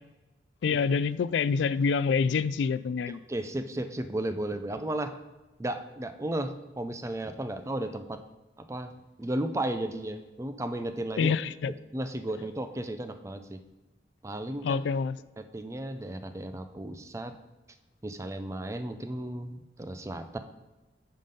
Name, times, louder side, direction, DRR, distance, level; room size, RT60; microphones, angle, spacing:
voice 1, 0.6-3.2 11.2-11.7 14.6-15.2, left 5 dB, 85° left, 17 dB, 0.3 m, -26 dB
voice 2, 3.3-5.1 5.6-8.2 8.7-8.9 9.2-11.3 11.9-13.6 14.2-14.8 15.5-17.3 18.0-20.4, right 1 dB, 15° right, 9 dB, 0.4 m, -34 dB
9.3 x 3.8 x 5.2 m, 1.1 s
head